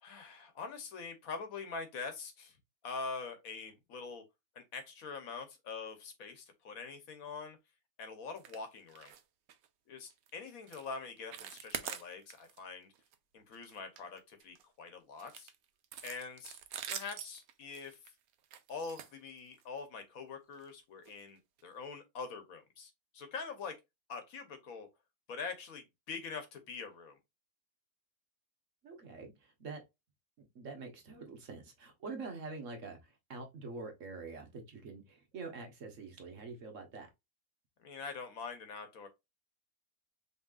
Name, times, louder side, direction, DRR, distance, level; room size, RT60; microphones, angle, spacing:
voice 1, 0.0-2.6 2.8-4.2 4.5-7.6 8.0-9.1 9.9-12.9 13.3-15.5 16.0-16.6 16.9-18.0 18.7-23.8 24.1-24.9 25.3-27.2 37.8-39.1, left 4 dB, 70° left, 1.4 m, -44 dB
sound 1, 8.4-8.6 8.9-9.2 9.5-9.7 10.1-10.3 10.7-10.9 11.2-12.6 12.9-13.1 13.5-14.6 15.2-19.8 20.5-20.7 21.0-21.1 21.6-21.7, right 9 dB, 80° right, 1.1 m, -45 dB
voice 2, 28.8-29.3 29.6-29.8 30.5-33.0 33.3-37.1, right 4 dB, 60° right, 1.4 m, -45 dB
5.4 x 3.1 x 2.4 m
omnidirectional pair, 1.5 m